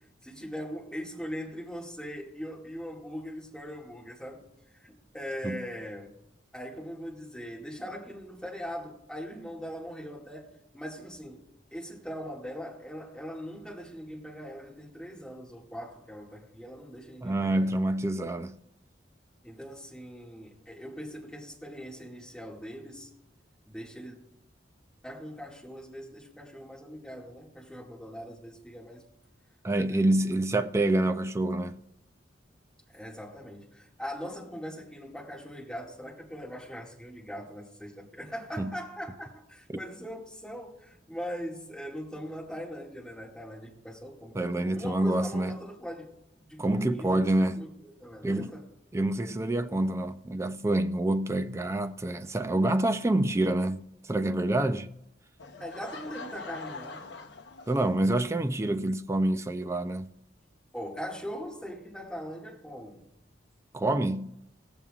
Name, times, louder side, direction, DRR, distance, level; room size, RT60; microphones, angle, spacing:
voice 1, 0.2-4.4 4.7-6.1 6.5-17.7 19.4-23.1 23.7-24.2 25.0-29.0 29.8-30.1 32.9-46.1 46.4-47.2 47.6-48.7 55.6-57.1 60.7-63.0, equal, 5° left, 2.0 m, -41 dB
voice 2, 17.2-18.5 29.6-31.8 38.6-38.7 44.3-45.5 46.6-47.6 48.2-48.5 48.9-54.9 57.7-60.1 63.7-64.3, right 1 dB, 15° right, 0.3 m, -27 dB
Laughter / Crowd, 55.4-58.2, left 3 dB, 70° left, 0.8 m, -43 dB
20.5 x 7.1 x 2.4 m
head